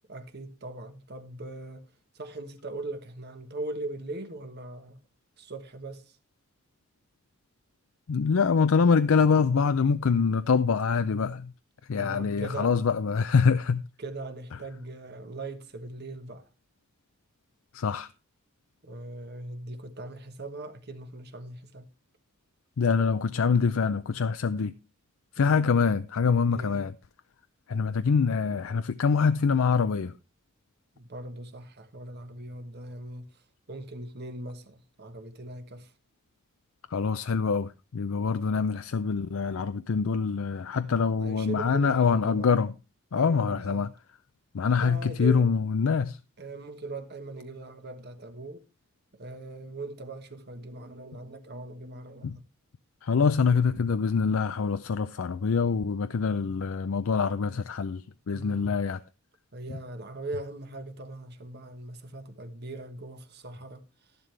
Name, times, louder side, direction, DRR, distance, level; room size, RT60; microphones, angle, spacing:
voice 1, 0.1-5.0 5.4-6.2 11.9-12.8 14.0-16.5 18.8-21.9 25.4-25.8 26.5-26.8 30.9-35.9 41.2-42.5 43.1-43.9 44.8-45.5 46.4-48.6 49.1-52.4 58.3-58.7 59.5-64.2, right 2 dB, 50° right, 1.3 m, -40 dB
voice 2, 8.1-11.5 11.9-13.8 17.7-18.1 22.8-24.7 25.4-26.9 27.7-30.1 36.9-42.7 43.1-43.9 44.5-46.2 52.2-52.4 53.0-59.0, left 5 dB, 80° left, 0.5 m, -25 dB
12.0 x 11.0 x 3.3 m
head